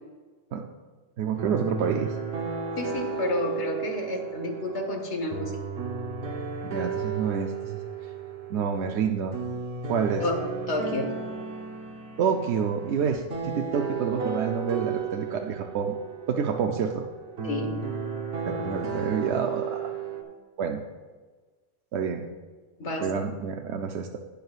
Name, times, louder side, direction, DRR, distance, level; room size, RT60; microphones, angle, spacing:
voice 1, 1.2-2.2 6.6-8.1 8.5-9.4 9.9-10.2 12.2-15.9 16.3-17.0 18.5-19.9 20.6-20.8 21.9-22.2 23.0-24.2, right 6 dB, 85° right, 4 dB, 0.9 m, -28 dB
sound 1, 1.4-20.2, right 5 dB, 65° right, 1.2 m, -34 dB
voice 2, 2.8-5.5 10.2-10.4 10.7-11.1 17.4-17.8 22.8-23.1, left 2 dB, 90° left, 3 dB, 1.6 m, -30 dB
11.5 x 9.3 x 2.4 m, 1.4 s
omnidirectional pair, 1.1 m